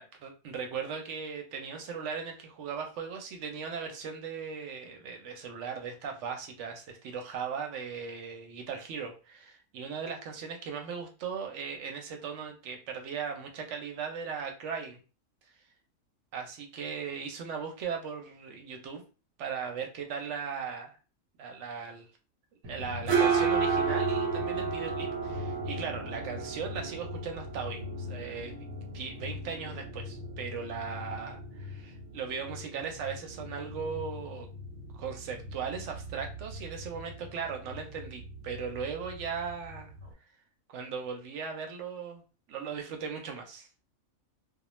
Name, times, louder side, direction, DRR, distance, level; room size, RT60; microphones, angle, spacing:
voice 1, 0.0-15.0 16.3-19.0 19.4-20.9 21.4-22.1 22.6-28.5 28.9-34.5 34.9-39.9 40.7-42.2 42.5-43.7, right 6 dB, 70° right, 4 dB, 0.8 m, -38 dB
sound 1, 22.6-40.1, right 4 dB, 90° right, 1.0 m, -34 dB
2.3 x 2.1 x 3.0 m, 0.35 s
omnidirectional pair, 1.4 m